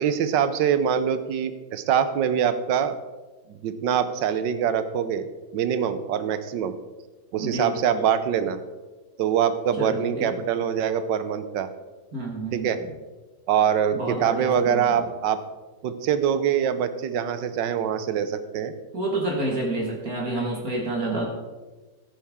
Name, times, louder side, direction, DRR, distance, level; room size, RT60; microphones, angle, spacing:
voice 1, 0.0-3.0 3.5-5.3 5.5-6.7 7.3-8.6 9.2-11.7 12.5-12.8 13.5-15.4 15.8-18.7, right 8 dB, 90° right, 11 dB, 1.4 m, -24 dB
voice 2, 7.4-7.7 9.8-10.3 12.1-12.7 13.9-15.1 18.9-21.3, right 2 dB, 55° right, -2 dB, 2.2 m, -29 dB
14.0 x 8.8 x 3.6 m, 1.2 s
omnidirectional pair, 1.9 m